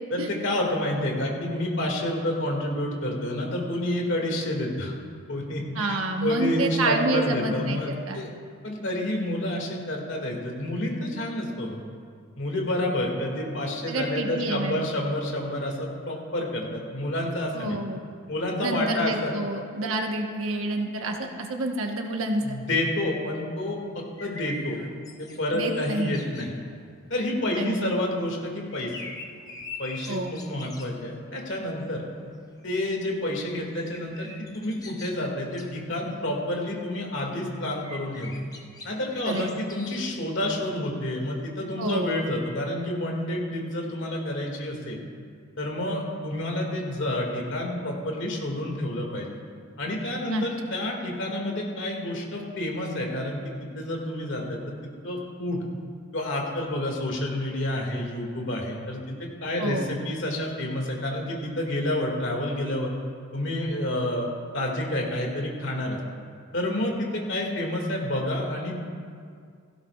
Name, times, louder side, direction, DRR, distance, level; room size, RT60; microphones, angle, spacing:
voice 1, 0.1-4.9 5.3-8.3 8.6-11.8 12.4-17.8 18.3-19.3 22.4-24.8 25.2-26.6 27.1-29.0 29.8-32.0 32.6-38.4 38.8-45.0 45.6-49.3 49.8-55.7 56.1-62.9 63.3-64.3 64.5-66.0 66.5-68.9, left 1 dB, 60° left, 0 dB, 2.1 m, -29 dB
voice 2, 5.7-8.2 13.9-14.8 17.5-18.0 18.6-22.6 25.5-26.2 27.6-28.0 30.1-30.3 39.2-39.5 41.8-42.1 50.3-50.4 59.6-59.9, right 2 dB, 75° right, 2 dB, 1.2 m, -28 dB
sound 1, 23.7-41.7, left 2 dB, 15° left, 0.8 m, -46 dB
17.5 x 15.5 x 2.4 m, 2.1 s
head